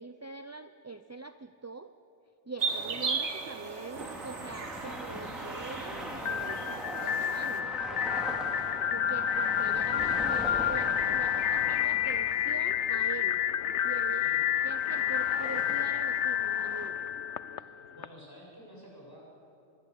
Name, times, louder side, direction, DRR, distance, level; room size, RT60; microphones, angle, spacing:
voice 1, 0.0-1.9 2.5-8.5 8.9-13.4 13.8-14.3 14.6-17.0, right 3 dB, 20° right, 10 dB, 0.4 m, -43 dB
sound 1, 2.6-7.6, right 4 dB, 80° right, 1.8 m, -36 dB
sound 2, 3.9-16.9, equal, ahead, 3.0 m, -42 dB
sound 3, 6.2-18.0, left 10 dB, 75° left, 1.0 m, -29 dB
voice 2, 8.5-8.9 14.1-14.4 17.9-19.2, equal, 20° left, -3 dB, 7.9 m, -51 dB
25.5 x 22.0 x 8.4 m, 2.8 s
omnidirectional pair, 1.2 m